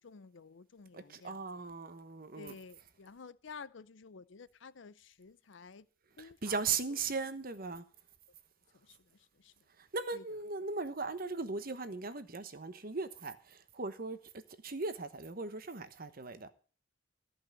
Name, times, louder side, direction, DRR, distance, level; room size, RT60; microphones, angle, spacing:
voice 1, 0.0-1.4 2.4-5.9 6.2-6.6 8.7-9.5 10.1-10.2, left 5 dB, 70° left, 0.6 m, -52 dB
voice 2, 0.9-2.6 6.2-7.8 9.8-16.5, right 4 dB, 50° right, 1.1 m, -38 dB
14.0 x 5.6 x 8.2 m
head